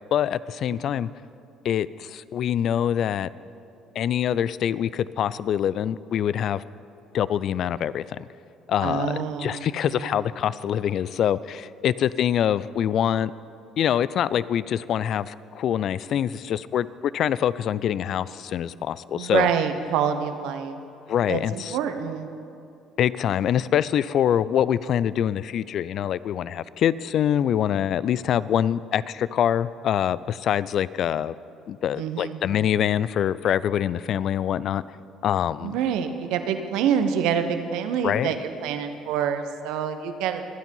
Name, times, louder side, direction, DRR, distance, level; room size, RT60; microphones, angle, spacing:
voice 1, 0.1-1.1 1.6-3.3 4.0-6.6 7.1-8.2 8.7-13.3 13.8-19.5 21.1-21.8 23.0-31.3 31.7-34.8 35.2-35.7 38.0-38.3, left 10 dB, 60° left, 18 dB, 0.4 m, -25 dB
voice 2, 8.8-10.2 19.1-20.7 21.3-22.3 31.9-32.4 35.6-40.4, right 8 dB, 70° right, 8 dB, 1.0 m, -26 dB
24.0 x 9.5 x 5.5 m, 2.6 s
hypercardioid pair, 55°, 0 cm